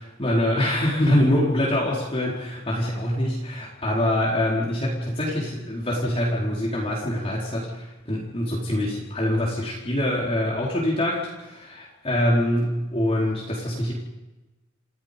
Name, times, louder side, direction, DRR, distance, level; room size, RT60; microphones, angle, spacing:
voice 1, 0.0-13.9, left 1 dB, 30° left, -5 dB, 4.4 m, -24 dB
29.0 x 16.5 x 5.3 m, 1.0 s
head